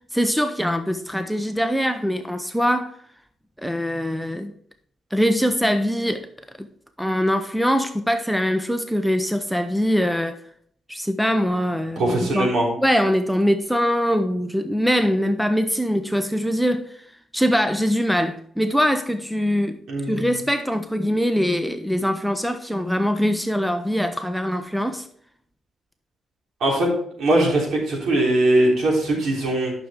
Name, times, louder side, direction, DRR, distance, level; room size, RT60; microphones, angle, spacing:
voice 1, 0.1-2.9 3.6-4.5 5.1-6.3 6.6-6.7 7.0-10.4 10.9-12.5 12.8-16.9 17.3-19.8 20.1-25.1, equal, ahead, 0.5 m, -22 dB
voice 2, 12.0-12.7 19.9-20.3 26.6-26.9 27.2-29.7, right 1 dB, 65° right, 3.4 m, -20 dB
10.0 x 6.2 x 3.6 m
cardioid pair, 155°, 0 cm